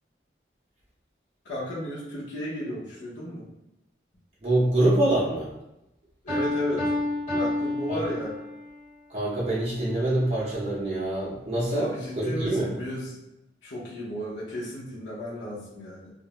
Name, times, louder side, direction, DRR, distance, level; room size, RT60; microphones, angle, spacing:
voice 1, 1.5-3.5 6.2-6.9 7.3-8.3 11.7-13.2 13.6-16.1, equal, 80° left, -7 dB, 0.7 m, -34 dB
voice 2, 4.4-5.5 7.9-8.0 9.1-11.9 12.2-12.7, right 1 dB, 35° right, -7 dB, 0.6 m, -25 dB
Piano, 6.3-8.7, left 2 dB, 35° left, 1.4 m, -29 dB
2.4 x 2.0 x 2.9 m, 0.89 s
head